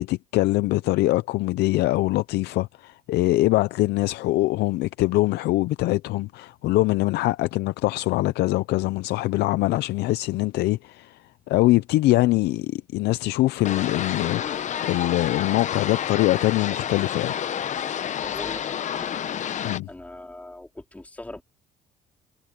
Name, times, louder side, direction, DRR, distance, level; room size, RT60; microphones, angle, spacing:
voice 1, 0.0-11.2 11.5-17.3 19.6-19.9, left 18 dB, 80° left, 0.6 m, -23 dB
sound 1, 13.6-19.8, left 9 dB, 45° left, 0.9 m, -29 dB
voice 2, 18.2-19.1 19.5-21.4, left 1 dB, 10° left, 3.5 m, -41 dB
cardioid pair, 110°, 17 cm